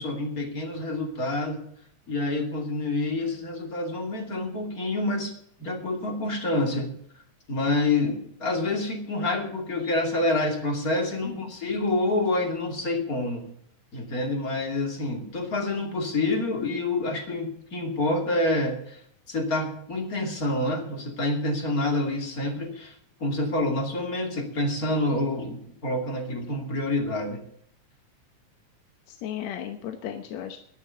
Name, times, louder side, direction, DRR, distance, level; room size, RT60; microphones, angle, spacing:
voice 1, 0.0-1.6 2.1-5.3 5.6-6.9 7.5-13.5 13.9-19.0 19.3-22.9 23.2-27.4, left 2 dB, 30° left, 3 dB, 2.8 m, -27 dB
voice 2, 29.1-30.6, left 10 dB, 70° left, 6 dB, 2.2 m, -35 dB
11.5 x 11.0 x 6.9 m, 0.66 s
omnidirectional pair, 3.5 m